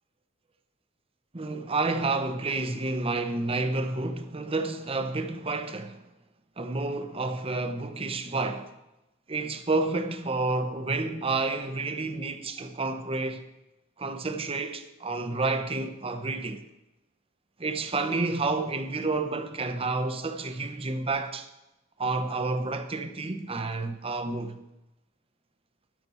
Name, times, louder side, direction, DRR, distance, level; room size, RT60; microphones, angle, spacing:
voice 1, 1.3-6.0 6.6-8.7 9.3-13.4 14.0-16.6 17.6-21.5 22.0-24.6, right 3 dB, 30° right, 0.8 m, -30 dB
13.0 x 6.1 x 5.6 m
head